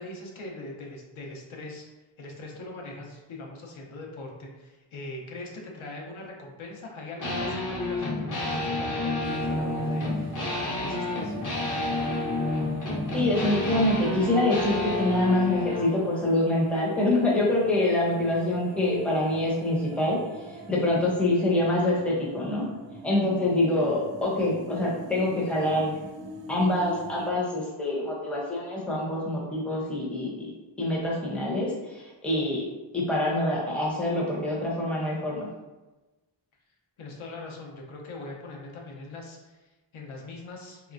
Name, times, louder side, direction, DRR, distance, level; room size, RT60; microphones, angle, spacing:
voice 1, 0.0-1.9 2.2-11.4 37.0-40.9, left 2 dB, 75° left, -1 dB, 0.8 m, -41 dB
sound 1, 7.2-15.9, left 2 dB, 40° left, 0.8 m, -29 dB
sound 2, 9.2-27.3, right 2 dB, 60° right, 0.5 m, -44 dB
voice 2, 13.1-20.2 20.5-22.7 23.0-26.0 26.5-30.5 30.8-32.6 32.9-35.5, left 1 dB, ahead, -4 dB, 0.6 m, -25 dB
3.2 x 2.9 x 2.5 m, 1.1 s
wide cardioid pair, 145°, 49 cm